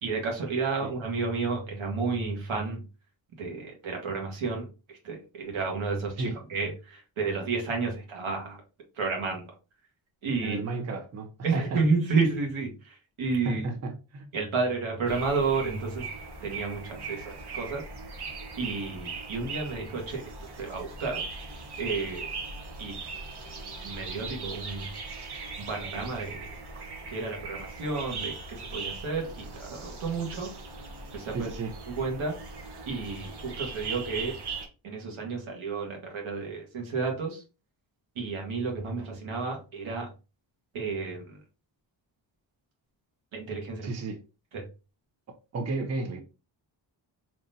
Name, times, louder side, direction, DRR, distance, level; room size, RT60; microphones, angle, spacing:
voice 1, 0.0-2.8 3.4-8.6 9.0-9.5 10.2-10.6 11.4-13.7 14.3-16.1 16.4-17.8 18.6-20.2 20.6-21.2 21.8-22.3 22.8-23.0 23.8-24.9 25.6-26.5 27.1-30.6 31.1-31.5 32.0-32.4 32.8-34.4 34.8-37.4 38.1-40.1 40.7-41.4 43.3-43.9 44.5-44.6, right 4 dB, 85° right, 1.5 m, -31 dB
voice 2, 10.4-11.9 13.4-14.3 31.3-31.7 43.8-44.2 45.5-46.2, right 3 dB, 35° right, 0.6 m, -33 dB
sound 1, 15.1-34.7, right 4 dB, 55° right, 1.0 m, -39 dB
3.7 x 3.0 x 2.6 m
wide cardioid pair, 115°, 47 cm